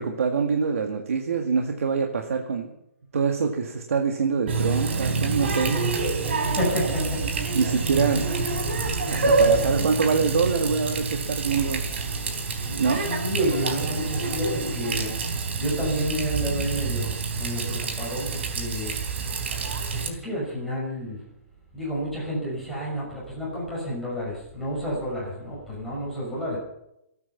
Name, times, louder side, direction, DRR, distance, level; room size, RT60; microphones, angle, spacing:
voice 1, 0.0-2.8 3.1-5.8 7.6-8.3 9.1-11.8 12.8-13.0, right 5 dB, 80° right, 3 dB, 2.0 m, -25 dB
Water tap faucet, 4.5-20.1, right 4 dB, 55° right, 3.8 m, -27 dB
voice 2, 6.4-7.5 7.8-8.1 12.7-15.1 15.6-18.9 19.9-21.2 21.7-26.6, equal, ahead, -7 dB, 6.1 m, -30 dB
26.0 x 9.5 x 5.8 m, 0.82 s
hypercardioid pair, 175°, 8 cm